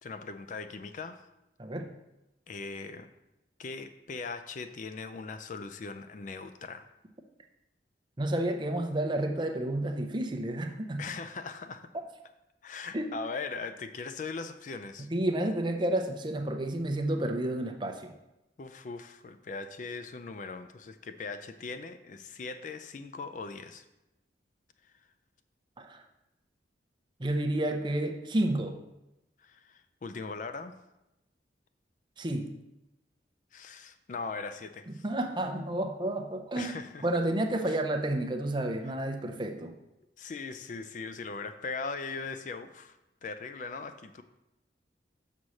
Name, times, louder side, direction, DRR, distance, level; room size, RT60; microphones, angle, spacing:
voice 1, 0.0-1.2 2.5-3.1 3.6-6.9 11.0-11.9 12.6-15.1 18.6-23.9 29.4-30.7 33.5-35.0 36.6-37.1 37.7-37.8 40.2-43.0 43.2-44.2, left 4 dB, 45° left, 10 dB, 0.4 m, -40 dB
voice 2, 8.2-11.0 12.9-13.1 15.1-18.1 25.8-26.0 27.2-28.8 32.2-32.5 34.9-36.7 37.0-39.7, right 1 dB, 25° right, 4 dB, 0.6 m, -30 dB
6.3 x 4.2 x 6.3 m, 0.92 s
head